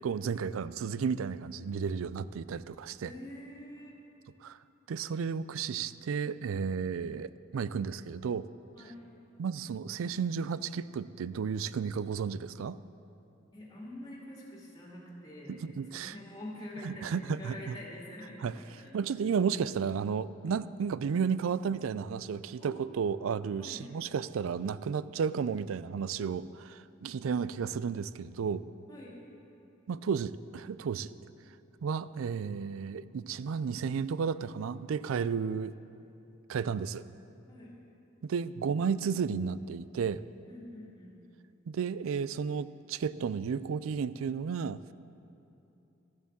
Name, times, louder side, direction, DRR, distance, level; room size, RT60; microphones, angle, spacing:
voice 1, 0.0-3.1 4.4-4.6 4.9-8.5 9.4-12.8 15.5-16.1 16.8-17.7 18.4-18.5 18.9-28.6 29.9-31.1 31.8-35.7 36.5-37.0 38.2-40.2 41.7-44.8, right 6 dB, 85° right, 16 dB, 0.4 m, -33 dB
voice 2, 3.0-4.0 8.7-9.0 13.5-18.9 22.6-22.8 23.6-23.8 28.9-29.2 37.5-37.8 40.5-41.2, left 1 dB, 20° left, -4 dB, 2.3 m, -46 dB
12.5 x 7.4 x 7.2 m, 2.8 s
head